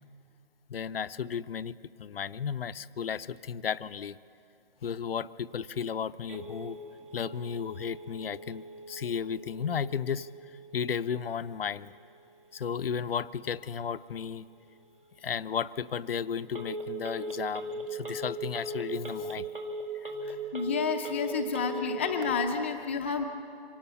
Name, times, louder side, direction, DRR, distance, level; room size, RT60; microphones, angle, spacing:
voice 1, 0.7-4.2 4.8-6.8 7.1-10.3 10.7-11.9 12.5-14.5 15.2-19.5 19.9-20.1, left 7 dB, 65° left, 15 dB, 0.6 m, -34 dB
Telephone, 6.3-22.3, equal, 55° right, 2.3 m, -41 dB
voice 2, 20.2-23.2, left 5 dB, 10° left, 2 dB, 0.6 m, -30 dB
25.0 x 17.5 x 6.9 m, 2.6 s
hypercardioid pair, 160°, 32 cm